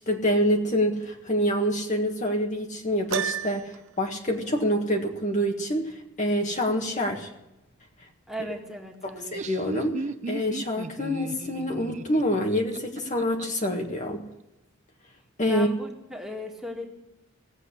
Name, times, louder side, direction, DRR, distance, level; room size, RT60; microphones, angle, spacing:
voice 1, 0.1-7.3 8.4-8.5 9.3-14.2 15.4-15.7, equal, 35° left, 1 dB, 1.7 m, -26 dB
Piano, 3.1-4.0, right 8 dB, 75° right, 0.6 m, -30 dB
voice 2, 8.3-9.2 15.5-16.9, equal, ahead, 0 dB, 2.2 m, -36 dB
Laughter, 9.1-13.7, right 3 dB, 35° right, 0.5 m, -36 dB
17.5 x 8.0 x 9.9 m, 0.94 s
head